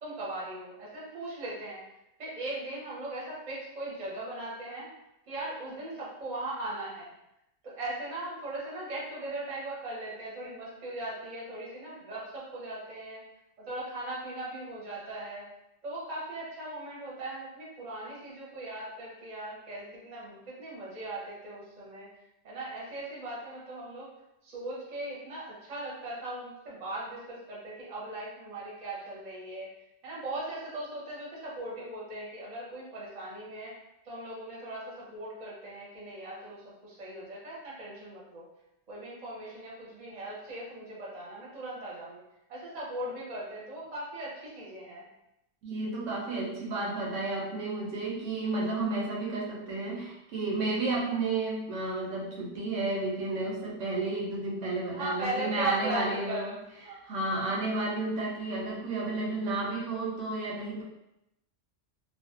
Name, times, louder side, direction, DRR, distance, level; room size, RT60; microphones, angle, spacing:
voice 1, 0.0-1.8 2.2-4.9 5.3-7.1 7.6-13.2 13.6-15.5 15.8-22.1 22.4-24.1 24.4-29.7 30.0-33.8 34.0-38.4 38.9-42.2 42.5-45.1 54.9-57.0 57.3-57.7, right 2 dB, 40° right, -5 dB, 0.7 m, -39 dB
voice 2, 45.6-56.6 56.9-60.8, right 2 dB, 75° right, -2 dB, 0.9 m, -32 dB
2.4 x 2.1 x 2.4 m, 0.86 s
omnidirectional pair, 1.3 m